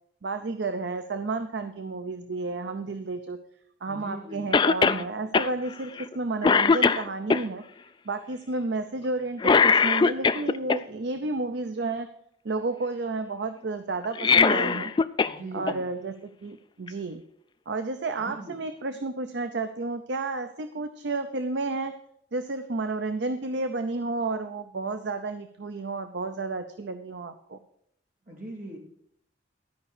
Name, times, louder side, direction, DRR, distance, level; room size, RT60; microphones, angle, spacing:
voice 1, 0.2-3.4 3.8-7.6 8.1-12.1 12.4-14.9 15.5-17.2 17.7-21.9 22.3-27.6, right 3 dB, 65° right, 9 dB, 0.6 m, -31 dB
voice 2, 3.8-4.6 15.2-15.9 18.2-18.6 28.3-28.8, right 1 dB, 50° right, 0 dB, 2.6 m, -40 dB
Cough, 4.5-5.0 5.3-5.5 6.0-6.2 6.4-7.4 9.4-10.8 14.0-15.4 15.7-15.8 16.9-17.0, left 5 dB, 25° left, 0.3 m, -20 dB
12.5 x 5.4 x 6.6 m, 0.72 s
head